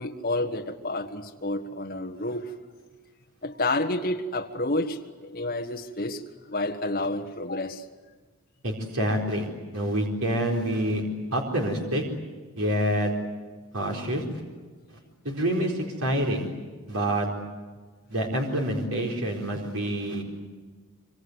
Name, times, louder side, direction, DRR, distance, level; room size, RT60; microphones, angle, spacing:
voice 1, 0.0-2.5 3.4-7.9, left 2 dB, 40° left, 3 dB, 1.5 m, -30 dB
voice 2, 8.6-9.5 9.7-11.0 11.3-12.0 12.6-13.1 13.7-14.2 15.2-16.5 16.9-17.3 18.1-20.2, right 1 dB, 85° right, 0 dB, 4.4 m, -27 dB
26.5 x 25.0 x 8.1 m, 1.4 s
head